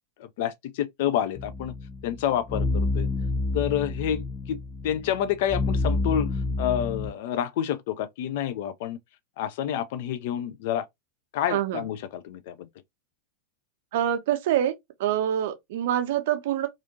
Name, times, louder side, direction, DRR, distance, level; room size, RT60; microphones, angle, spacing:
voice 1, 0.2-1.7 2.0-3.1 3.5-9.0 9.4-10.9 11.3-12.7, left 10 dB, 50° left, 0.3 m, -29 dB
sound 1, 1.4-7.1, left 3 dB, 25° left, 0.7 m, -29 dB
voice 2, 11.5-11.9 13.9-14.7 15.0-16.7, right 11 dB, 55° right, 0.6 m, -25 dB
2.5 x 2.5 x 2.6 m
figure-of-eight pair, 90°, 0 cm